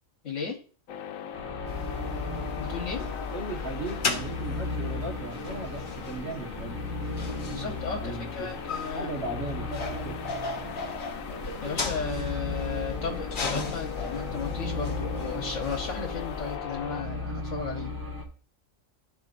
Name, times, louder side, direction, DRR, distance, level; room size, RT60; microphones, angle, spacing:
voice 1, 0.2-0.6 2.6-3.0 7.5-9.1 11.6-17.9, left 5 dB, 70° left, 0 dB, 1.3 m, -35 dB
sound 1, 0.9-17.0, left 9 dB, 85° left, 1.0 m, -40 dB
sound 2, 1.3-18.2, left 2 dB, 15° right, 1.1 m, -37 dB
sound 3, 1.6-16.6, left 4 dB, 45° left, 1.0 m, -37 dB
voice 2, 3.3-6.9 7.9-8.5 8.9-10.2, right 2 dB, 55° right, 1 dB, 1.7 m, -37 dB
12.5 x 4.3 x 2.5 m, 0.42 s
omnidirectional pair, 1.3 m